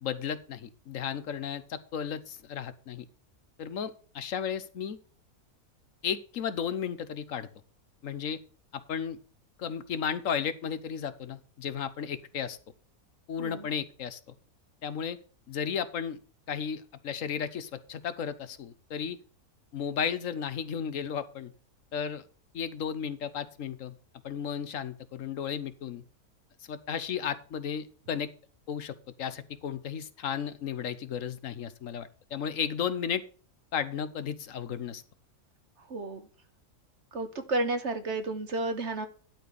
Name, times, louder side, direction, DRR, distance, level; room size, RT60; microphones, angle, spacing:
voice 1, 0.0-3.0 3.6-5.0 6.0-7.5 8.0-8.4 8.7-9.2 9.6-12.6 13.3-14.3 14.8-15.2 15.5-16.2 16.5-19.2 19.7-21.5 21.9-22.2 22.5-23.9 24.2-26.0 26.7-28.3 28.7-33.2 33.7-35.0, left 7 dB, 65° left, 14 dB, 1.2 m, -34 dB
voice 2, 35.8-36.3 37.1-39.1, right 2 dB, 50° right, 8 dB, 1.5 m, -32 dB
12.0 x 4.4 x 6.6 m, 0.39 s
omnidirectional pair, 1.6 m